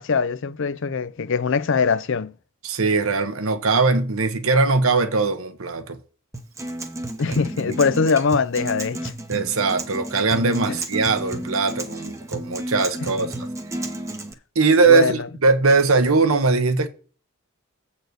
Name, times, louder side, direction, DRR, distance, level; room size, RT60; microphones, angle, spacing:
voice 1, 0.0-2.3 7.2-9.1 10.7-10.8 13.0-13.3 14.9-15.3, left 5 dB, 55° left, 0.5 m, -22 dB
voice 2, 2.6-6.0 7.7-7.8 9.3-13.3 14.5-16.9, right 4 dB, 70° right, 1.1 m, -20 dB
Acoustic guitar, 6.3-14.3, right 1 dB, 15° right, 0.8 m, -32 dB
7.9 x 4.2 x 6.7 m
head